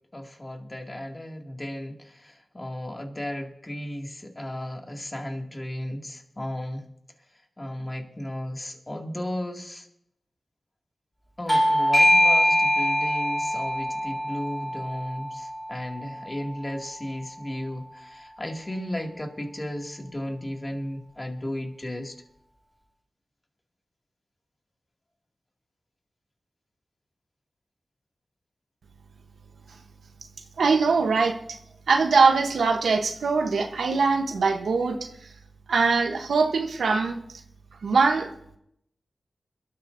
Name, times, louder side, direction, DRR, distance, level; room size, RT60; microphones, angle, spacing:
voice 1, 0.1-6.9 7.6-9.9 11.4-22.1, left 1 dB, 30° left, 2 dB, 2.3 m, -35 dB
Bell / Doorbell, 11.5-16.7, equal, 5° left, 2.0 m, -23 dB
voice 2, 30.6-31.6 31.9-35.1 35.7-37.2 37.8-38.3, right 4 dB, 90° right, 5 dB, 1.0 m, -22 dB
22.0 x 13.0 x 2.6 m, 0.75 s
cardioid pair, 45°, 0 cm